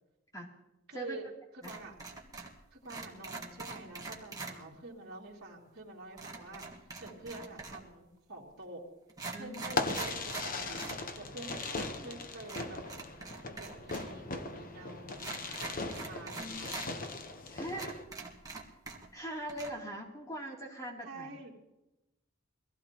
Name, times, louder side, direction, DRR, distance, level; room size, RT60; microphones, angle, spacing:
voice 1, 0.9-1.3 1.6-2.0 2.7-8.8 9.3-10.8 11.2-12.8 13.6-17.2 21.0-21.5, right 2 dB, 55° right, -6 dB, 2.9 m, -48 dB
sound 1, 1.6-2.6 2.9-4.6 6.2-7.9 8.6-8.7 9.1-11.0 11.3-11.4 12.4-14.1 14.4-14.5 15.2-16.9 17.4-17.5 17.7-19.2 19.5-19.7, right 3 dB, 20° right, 1.6 m, -43 dB
voice 2, 4.4-4.8 6.3-6.4 9.3-10.0 11.4-12.1 16.3-16.7 17.5-18.0 19.1-21.5, right 1 dB, 15° left, -1 dB, 3.0 m, -43 dB
Fireworks, 9.7-18.0, left 3 dB, 45° left, 1.0 m, -39 dB
23.5 x 15.5 x 3.0 m, 0.96 s
head